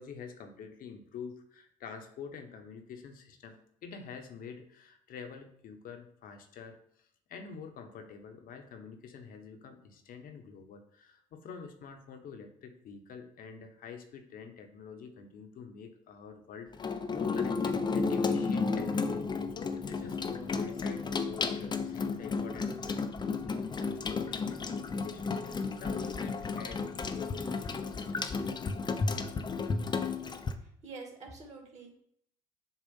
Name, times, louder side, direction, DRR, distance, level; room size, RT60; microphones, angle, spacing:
voice 1, 0.0-3.6 3.8-6.8 7.3-19.2 19.5-28.2, left 6 dB, 55° left, 6 dB, 1.2 m, -47 dB
Water tap faucet / Sink (filling or washing), 16.7-30.5, left 4 dB, 25° left, 0.7 m, -33 dB
voice 2, 30.6-32.0, right 3 dB, 40° right, 1 dB, 2.1 m, -47 dB
7.2 x 2.5 x 5.4 m, 0.70 s
supercardioid pair, 75°, 17 cm